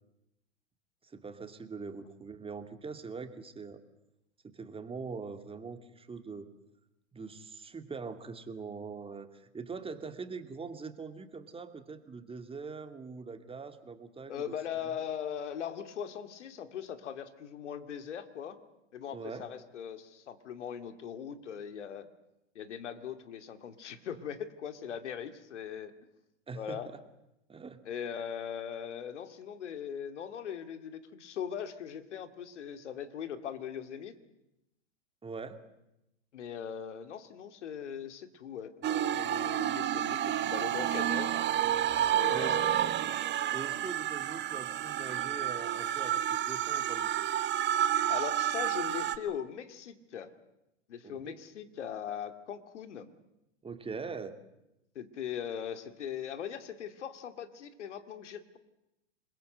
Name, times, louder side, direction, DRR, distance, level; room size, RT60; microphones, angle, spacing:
voice 1, 1.0-3.8 4.4-6.5 7.1-14.9 19.1-19.5 26.5-27.0 27.5-27.8 35.2-35.6 42.3-42.6 43.5-47.1 51.0-51.4 53.6-54.4, right 4 dB, 15° right, 8 dB, 2.3 m, -42 dB
voice 2, 14.3-18.6 18.9-22.1 22.5-25.9 26.5-26.9 27.9-34.1 36.3-41.3 42.1-43.1 48.1-50.3 50.9-53.1 54.9-58.6, left 8 dB, 80° left, 10 dB, 2.5 m, -40 dB
sound 1, 38.8-49.2, right 11 dB, 30° right, 1.7 m, -30 dB
27.5 x 21.5 x 7.9 m, 0.89 s
hypercardioid pair, 100°, 35 cm